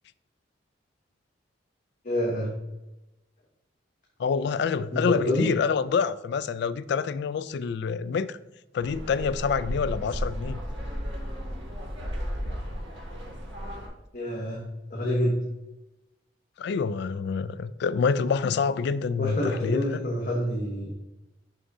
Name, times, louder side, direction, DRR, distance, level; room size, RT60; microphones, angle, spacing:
voice 1, 2.0-2.5 4.9-5.5 14.1-14.6 14.9-15.4 19.2-20.9, left 1 dB, 45° left, 1.1 m, -27 dB
voice 2, 4.2-8.4 8.7-10.6 16.6-20.0, left 5 dB, 65° left, 0.3 m, -27 dB
sound 1, 8.8-13.9, equal, 80° right, 1.5 m, -34 dB
6.4 x 5.9 x 2.7 m
head